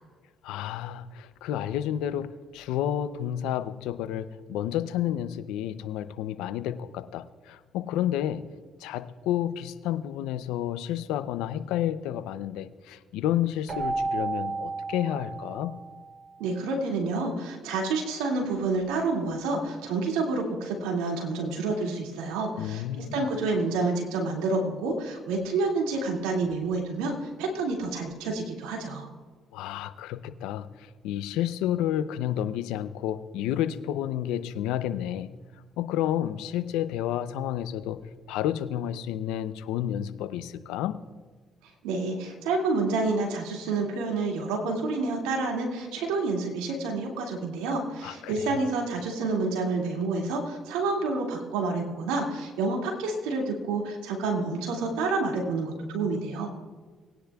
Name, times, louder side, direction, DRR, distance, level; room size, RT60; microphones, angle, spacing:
voice 1, 0.4-8.5 8.8-15.8 22.6-23.3 29.5-30.7 31.0-35.3 35.8-38.0 38.3-41.0 48.0-48.6, left 11 dB, 85° left, 13 dB, 0.6 m, -30 dB
Keyboard (musical), 13.7-16.3, right 3 dB, 55° right, 2.6 m, -32 dB
voice 2, 16.4-22.8 23.1-29.1 41.8-56.5, right 3 dB, 90° right, 1 dB, 2.3 m, -28 dB
20.0 x 10.0 x 2.4 m, 1.4 s
supercardioid pair, 60°, 0 cm